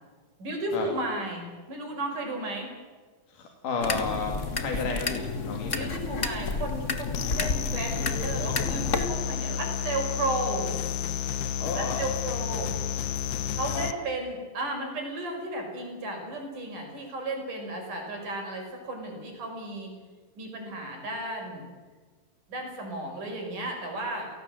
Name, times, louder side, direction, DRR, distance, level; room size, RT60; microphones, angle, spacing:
voice 1, 0.4-2.7 3.9-4.0 5.7-10.7 11.8-12.7 13.6-19.9 20.4-21.7 22.5-24.3, right 2 dB, 80° right, 2 dB, 7.1 m, -34 dB
voice 2, 3.3-5.9 11.6-12.0 13.7-13.9, left 4 dB, 85° left, 2 dB, 3.9 m, -32 dB
sound 1, 3.8-9.1, left 4 dB, 35° left, 1.4 m, -31 dB
sound 2, 7.1-13.9, left 10 dB, 65° left, 1.9 m, -31 dB
29.0 x 18.0 x 7.8 m, 1.4 s
omnidirectional pair, 3.6 m